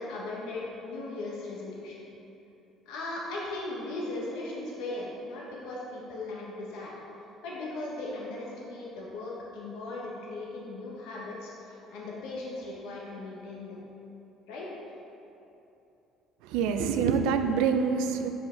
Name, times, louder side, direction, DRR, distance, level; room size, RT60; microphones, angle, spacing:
voice 1, 0.0-2.1 2.8-7.0 7.4-13.8 14.5-14.7, left 2 dB, 85° left, -4 dB, 1.1 m, -38 dB
voice 2, 16.4-18.3, right 6 dB, 90° right, 7 dB, 0.4 m, -26 dB
7.1 x 5.0 x 3.7 m, 2.9 s
cardioid pair, 145°, 0 cm